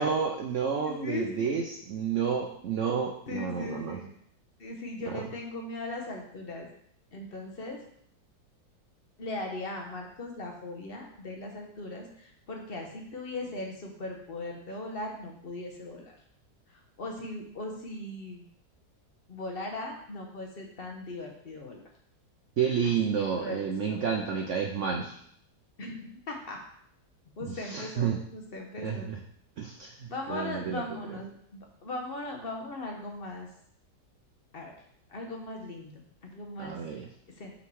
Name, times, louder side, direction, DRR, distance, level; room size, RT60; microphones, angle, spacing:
voice 1, 0.0-4.0 5.1-5.2 22.6-25.2 27.5-28.2 28.8-29.2 29.6-30.8 36.6-37.1, right 6 dB, 75° right, 3 dB, 0.7 m, -30 dB
voice 2, 0.7-1.6 3.3-4.1 4.6-6.7 7.1-7.8 9.2-16.2 16.7-18.5 19.3-21.8 22.8-24.2 25.8-26.6 27.4-29.2 30.1-33.5 34.5-34.7 35.1-36.8 37.3-37.5, left 2 dB, 40° left, 1 dB, 1.0 m, -39 dB
5.8 x 4.1 x 4.6 m, 0.66 s
omnidirectional pair, 1.9 m